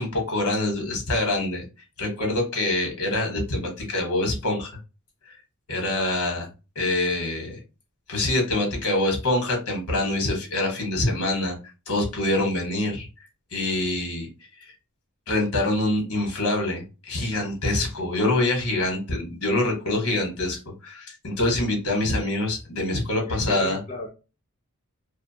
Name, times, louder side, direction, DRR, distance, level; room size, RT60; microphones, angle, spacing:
voice 1, 0.0-1.6 2.0-4.7 5.7-6.5 6.7-7.6 8.1-11.6 11.9-13.1 13.5-14.3 15.3-23.8, left 2 dB, 75° left, 2 dB, 1.1 m, -25 dB
voice 2, 23.2-24.1, left 2 dB, 30° left, 0 dB, 0.4 m, -35 dB
2.5 x 2.3 x 2.6 m, 0.31 s
head